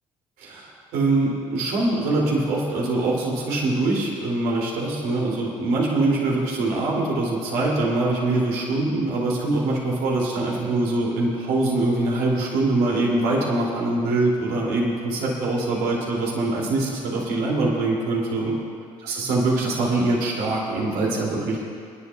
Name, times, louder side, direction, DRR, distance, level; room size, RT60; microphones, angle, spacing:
voice 1, 0.4-18.5 19.0-21.6, right 2 dB, 70° right, -3 dB, 3.1 m, -23 dB
29.5 x 11.0 x 2.5 m, 2.2 s
hypercardioid pair, 50°, 17 cm